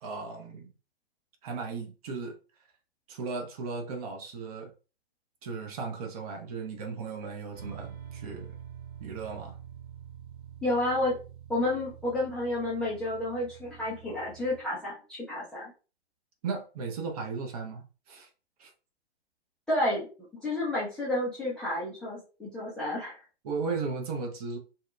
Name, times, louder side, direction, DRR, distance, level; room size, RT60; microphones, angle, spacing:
voice 1, 0.0-0.7 1.4-2.4 3.1-4.7 5.4-8.5 9.0-9.6 16.4-18.3 18.6-18.7 23.4-24.6, right 4 dB, 35° right, 0.6 m, -36 dB
sound 1, 7.5-14.6, right 9 dB, 55° right, 1.5 m, -46 dB
voice 2, 10.6-11.2 11.5-15.7 19.7-20.1 20.4-23.2, left 1 dB, 5° left, 0.4 m, -30 dB
2.7 x 2.1 x 2.4 m
figure-of-eight pair, 120°, 32 cm